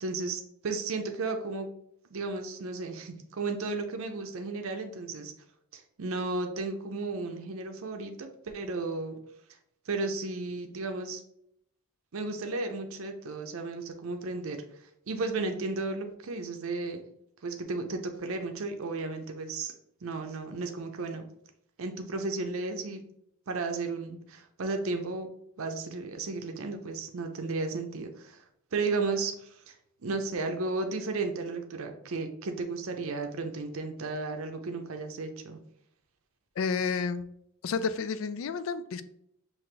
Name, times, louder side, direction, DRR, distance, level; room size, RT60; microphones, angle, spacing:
voice 1, 0.0-1.7 2.1-5.3 5.7-9.2 9.9-11.2 12.1-14.6 15.1-17.0 17.4-19.7 20.0-21.3 21.8-23.0 23.5-25.3 25.6-28.4 28.7-29.7 30.0-35.6, right 3 dB, 70° right, 5 dB, 0.5 m, -34 dB
voice 2, 36.6-37.2 37.6-39.0, left 5 dB, 65° left, 13 dB, 0.3 m, -30 dB
5.7 x 2.5 x 3.2 m, 0.73 s
head